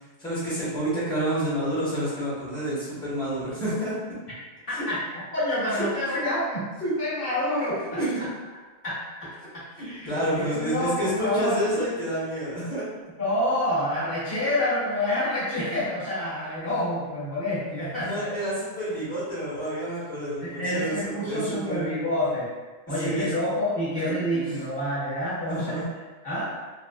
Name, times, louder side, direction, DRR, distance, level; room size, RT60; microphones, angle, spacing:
voice 1, 0.2-3.9 4.7-4.8 5.7-6.2 6.8-6.9 7.6-8.2 9.8-12.8 18.0-21.9 23.0-23.3 25.4-25.9, right 1 dB, 5° left, -10 dB, 1.1 m, -29 dB
voice 2, 5.3-6.7 7.0-7.8 8.8-10.1 10.3-11.6 13.2-18.3 20.4-22.5 22.9-25.8 26.2-26.5, left 1 dB, 60° left, -9 dB, 1.1 m, -28 dB
3.4 x 2.4 x 2.3 m, 1.3 s
omnidirectional pair, 1.1 m